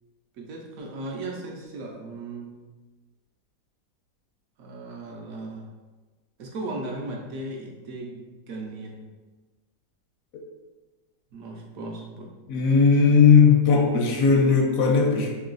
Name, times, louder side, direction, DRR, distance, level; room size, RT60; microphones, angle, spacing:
voice 1, 0.4-2.5 4.6-5.7 6.4-8.2 8.5-9.1 11.3-12.3, right 2 dB, 70° right, 0 dB, 0.8 m, -36 dB
voice 2, 12.5-15.3, left 5 dB, 70° left, 1 dB, 0.8 m, -17 dB
3.1 x 2.8 x 3.8 m, 1.2 s
omnidirectional pair, 1.9 m